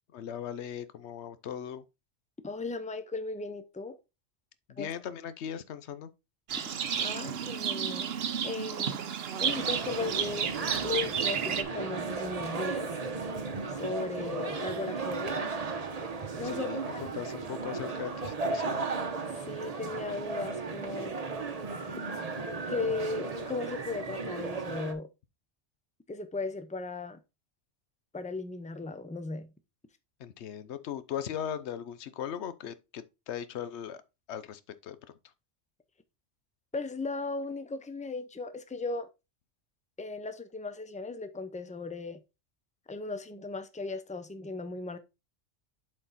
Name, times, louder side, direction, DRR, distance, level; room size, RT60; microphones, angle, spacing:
voice 1, 0.1-1.8 4.7-6.1 16.4-18.9 30.2-34.0 34.3-35.0, left 9 dB, 70° left, 1.0 m, -39 dB
voice 2, 2.4-4.0 4.8-4.9 7.0-8.1 8.4-9.0 9.4-10.5 10.8-12.9 13.7-15.5 16.4-17.0 19.5-21.2 22.7-25.1 26.1-27.2 28.1-29.5 36.7-39.1 40.0-42.2 42.9-45.0, left 3 dB, 10° left, 0.5 m, -36 dB
Livestock farm animals working animals, 6.5-11.6, right 8 dB, 60° right, 0.9 m, -32 dB
sound 1, 9.4-24.9, right 4 dB, 35° right, 0.9 m, -35 dB
7.5 x 4.4 x 4.0 m
omnidirectional pair, 1.2 m